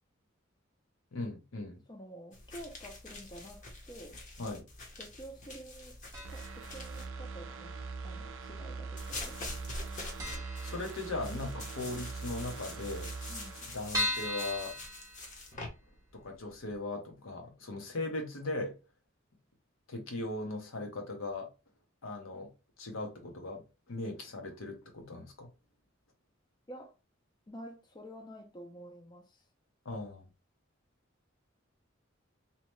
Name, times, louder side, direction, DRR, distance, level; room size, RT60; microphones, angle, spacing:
voice 1, 1.1-1.8 4.4-4.6 10.6-13.1 13.7-14.8 16.1-18.7 19.9-21.5 22.0-22.5 22.8-23.6 23.9-25.5 29.8-30.2, left 2 dB, 80° left, 0.8 m, -38 dB
voice 2, 1.9-4.2 5.0-9.4 13.3-13.7 26.7-26.9 27.5-29.4, equal, 20° left, 0.4 m, -49 dB
sound 1, 2.3-7.1 9.0-15.7, left 2 dB, 40° left, 0.8 m, -46 dB
sound 2, 6.1-6.7 6.9-7.0 8.0-8.7 8.9-9.1 9.4-9.5 9.8-9.9 10.2-11.5 11.9-12.0 12.2-12.3 12.5-12.6 13.1-15.8 16.2-16.3 16.7-16.8, left 1 dB, 15° right, 0.7 m, -37 dB
sound 3, 6.2-14.9 15.3-15.4, right 4 dB, 65° right, 0.4 m, -43 dB
2.8 x 2.1 x 3.0 m
head